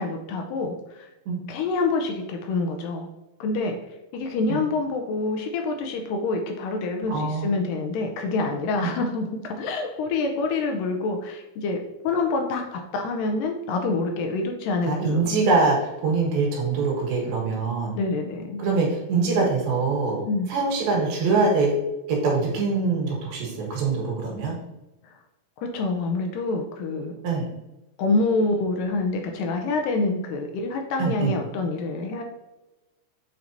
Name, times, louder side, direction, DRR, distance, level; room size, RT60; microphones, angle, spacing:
voice 1, 0.0-1.1 1.5-3.1 3.4-3.8 4.1-15.3 18.0-18.6 20.3-20.5 25.0-25.1 25.6-27.1 28.0-32.2, left 3 dB, 80° left, 3 dB, 2.1 m, -26 dB
voice 2, 7.1-7.6 8.8-8.9 14.9-17.9 18.6-20.2 20.5-21.8 22.1-24.6 27.2-27.5 31.0-31.3, right 4 dB, 85° right, -1 dB, 3.4 m, -23 dB
7.7 x 4.6 x 2.7 m, 1.0 s
omnidirectional pair, 4.2 m